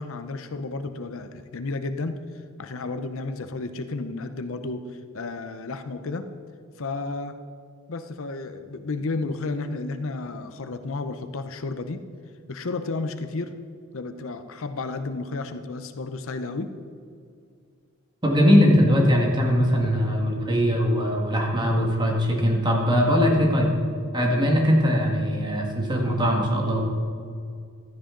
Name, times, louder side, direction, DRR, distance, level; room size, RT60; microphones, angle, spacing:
voice 1, 0.0-2.2 2.6-6.3 6.8-7.4 7.9-12.0 12.5-13.5 13.9-16.7 19.8-19.9, left 3 dB, 65° left, 9 dB, 0.7 m, -32 dB
voice 2, 18.2-23.7 24.1-26.8, equal, 20° right, 0 dB, 1.8 m, -21 dB
15.5 x 13.0 x 3.8 m, 2.3 s
head